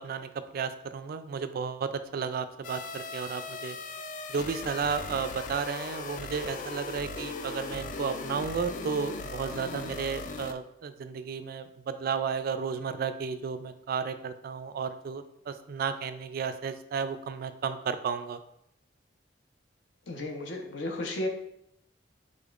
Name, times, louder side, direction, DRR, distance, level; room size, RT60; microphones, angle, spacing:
voice 1, 0.0-3.8 4.3-18.4, right 6 dB, 50° right, 10 dB, 0.3 m, -33 dB
sound 1, 2.6-10.5, left 3 dB, 45° left, 0.3 m, -38 dB
voice 2, 20.1-21.3, left 1 dB, 75° left, 2 dB, 0.8 m, -33 dB
5.1 x 4.2 x 2.4 m, 0.77 s
head